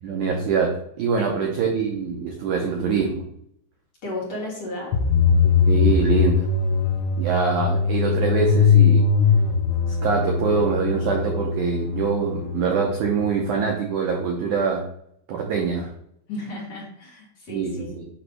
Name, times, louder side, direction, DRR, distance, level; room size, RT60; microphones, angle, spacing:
voice 1, 0.0-3.2 5.6-6.5 7.2-9.1 9.9-14.8 15.3-15.9 17.5-18.1, right 5 dB, 80° right, 0 dB, 1.7 m, -24 dB
voice 2, 4.0-4.9 16.3-17.9, left 1 dB, 45° left, -4 dB, 2.4 m, -33 dB
sound 1, 4.9-13.8, left 5 dB, 80° left, 2.9 m, -21 dB
8.4 x 3.2 x 6.2 m, 0.70 s
omnidirectional pair, 5.0 m